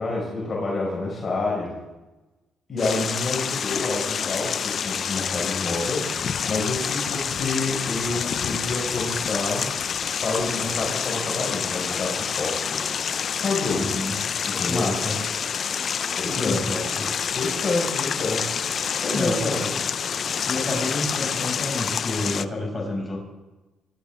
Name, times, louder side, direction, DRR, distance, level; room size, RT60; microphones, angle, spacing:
voice 1, 0.0-1.8 2.7-9.8 10.2-14.0 14.5-14.9 16.2-16.6 17.3-19.7, left 3 dB, 35° left, -4 dB, 5.8 m, -28 dB
sound 1, 2.8-22.5, left 7 dB, 55° left, 0.5 m, -27 dB
voice 2, 13.7-14.2 14.7-15.2 16.3-17.1 19.1-19.6 20.5-23.2, left 2 dB, 15° left, -2 dB, 6.9 m, -29 dB
24.0 x 13.5 x 3.8 m, 1.1 s
cardioid pair, 90°, 0 cm